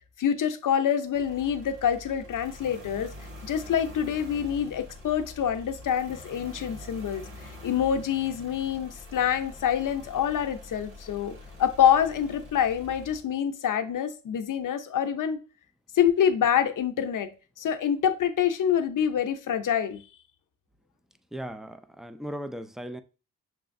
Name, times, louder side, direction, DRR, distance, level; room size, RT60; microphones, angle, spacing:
voice 1, 0.2-3.1 3.4-15.4 15.9-17.3 17.6-20.0, left 9 dB, 65° left, 0.7 m, -26 dB
sound 1, 1.1-13.2, left 1 dB, 85° right, 1.8 m, -45 dB
voice 2, 21.3-23.0, equal, ahead, 0.4 m, -37 dB
6.1 x 3.3 x 2.6 m
cardioid pair, 55°, 34 cm